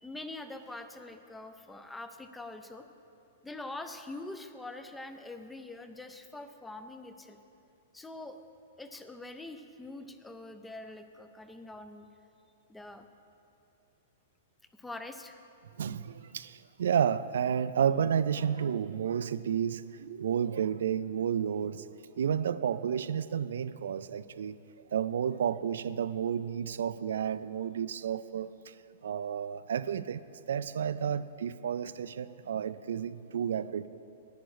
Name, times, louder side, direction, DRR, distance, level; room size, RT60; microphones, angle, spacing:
voice 1, 0.0-2.9 3.4-7.4 7.9-8.4 8.8-12.1 12.7-13.1 14.8-15.4, left 2 dB, 5° left, 0.4 m, -44 dB
voice 2, 15.8-21.8 22.2-24.6 24.9-28.7 29.0-30.2 30.5-33.9, right 8 dB, 80° right, 0.3 m, -31 dB
10.5 x 9.5 x 4.8 m
hypercardioid pair, 165°, 0 cm